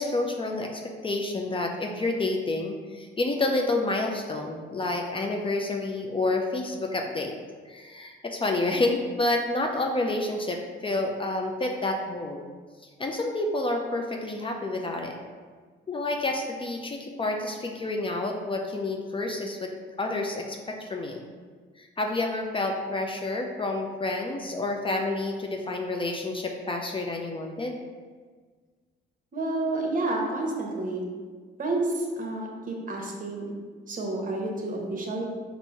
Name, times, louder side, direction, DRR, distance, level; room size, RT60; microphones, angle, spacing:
voice 1, 0.0-7.3 7.7-12.4 13.0-15.2 15.9-19.7 20.0-21.2 21.8-27.8, left 2 dB, 25° left, 2 dB, 0.5 m, -29 dB
voice 2, 29.3-31.0 31.6-33.5 33.9-35.2, right 2 dB, 45° right, 0 dB, 1.0 m, -30 dB
4.4 x 2.6 x 4.5 m, 1.5 s
cardioid pair, 90°, 20 cm